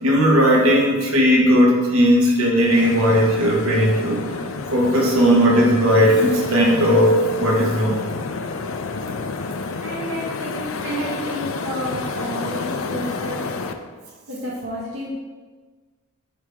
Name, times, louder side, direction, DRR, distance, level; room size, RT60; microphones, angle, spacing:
voice 1, 0.0-4.2 4.7-8.0, equal, 75° right, -2 dB, 1.3 m, -17 dB
sound 1, 2.6-13.7, left 4 dB, 60° left, 0.4 m, -30 dB
voice 2, 9.8-13.4 14.3-15.1, equal, 55° right, -6 dB, 1.0 m, -30 dB
8.4 x 3.5 x 3.3 m, 1.4 s
head